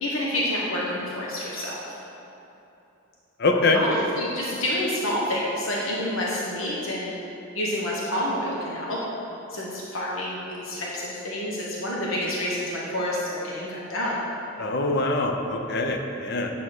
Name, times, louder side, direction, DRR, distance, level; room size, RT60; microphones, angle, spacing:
voice 1, 0.0-1.8 3.7-7.2 7.5-9.0 9.5-14.2, left 1 dB, 85° left, -5 dB, 1.1 m, -28 dB
voice 2, 3.4-3.8 14.6-16.5, left 2 dB, 55° left, 3 dB, 0.6 m, -24 dB
8.6 x 3.6 x 6.1 m, 2.9 s
head